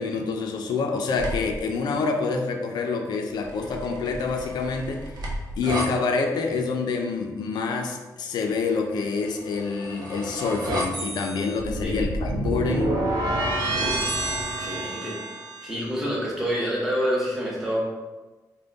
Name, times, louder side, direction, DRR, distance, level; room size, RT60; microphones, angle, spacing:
voice 1, 0.0-5.2 5.6-13.0, left 4 dB, 80° left, 3 dB, 0.4 m, -27 dB
sound 1, 1.2-1.6 3.5-5.9 9.4-15.8, right 1 dB, 80° right, 0.6 m, -29 dB
voice 2, 13.6-14.1 14.6-15.2 15.6-17.8, equal, 5° right, -5 dB, 0.8 m, -27 dB
3.5 x 2.2 x 3.8 m, 1.2 s
wide cardioid pair, 180°, 7 cm